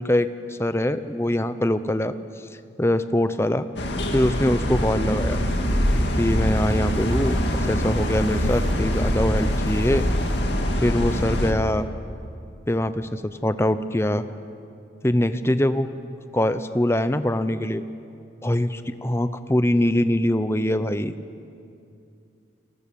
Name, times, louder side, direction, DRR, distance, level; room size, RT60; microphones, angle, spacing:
voice 1, 0.0-2.1 2.8-3.7 4.1-5.4 6.2-10.1 10.8-11.9 12.7-14.2 15.0-15.9 16.3-17.8 18.4-21.1, left 1 dB, 15° left, 11 dB, 0.7 m, -23 dB
sound 1, 3.8-11.5, equal, 65° left, 2.2 m, -24 dB
29.0 x 20.0 x 7.0 m, 2.6 s
head